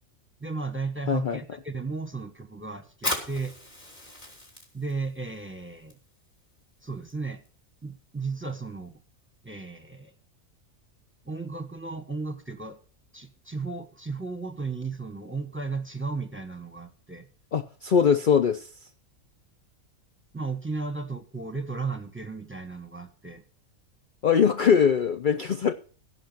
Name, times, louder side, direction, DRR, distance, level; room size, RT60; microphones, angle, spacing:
voice 1, 0.4-3.5 4.7-6.0 6.8-7.4 7.8-8.9 9.4-10.1 11.2-12.8 13.1-17.2 20.3-23.4, right 4 dB, 10° right, 8 dB, 1.2 m, -34 dB
voice 2, 1.1-1.4 17.5-18.7 24.2-25.7, left 7 dB, 50° left, 9 dB, 0.7 m, -22 dB
Fire, 2.9-10.1, left 1 dB, 30° left, 3.5 m, -40 dB
16.0 x 6.2 x 6.0 m, 0.38 s
omnidirectional pair, 1.5 m